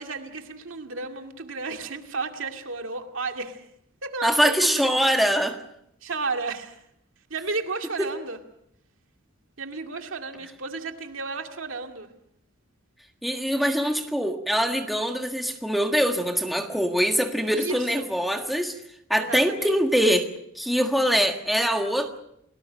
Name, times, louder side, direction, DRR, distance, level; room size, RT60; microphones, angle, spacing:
voice 1, 0.0-3.6 4.0-4.9 6.0-6.8 7.3-8.4 9.6-12.1 17.5-18.1 19.2-19.8, right 3 dB, 65° right, 4 dB, 2.3 m, -33 dB
voice 2, 4.2-5.6 8.0-8.1 13.2-18.8 19.1-20.3 20.5-22.2, equal, ahead, 4 dB, 1.6 m, -23 dB
29.5 x 19.0 x 6.3 m, 0.74 s
head